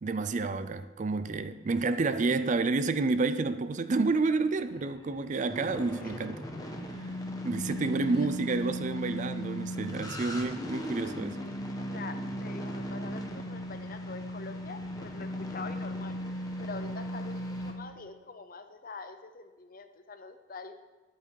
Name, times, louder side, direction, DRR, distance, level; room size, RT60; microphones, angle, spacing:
voice 1, 0.0-6.4 7.4-11.4, right 3 dB, 40° right, 0.4 m, -29 dB
sound 1, 3.9-17.7, equal, 20° left, 1.1 m, -37 dB
voice 2, 7.9-8.3 10.9-16.2 16.6-20.8, left 4 dB, 45° left, 0.8 m, -45 dB
10.5 x 8.7 x 4.7 m
head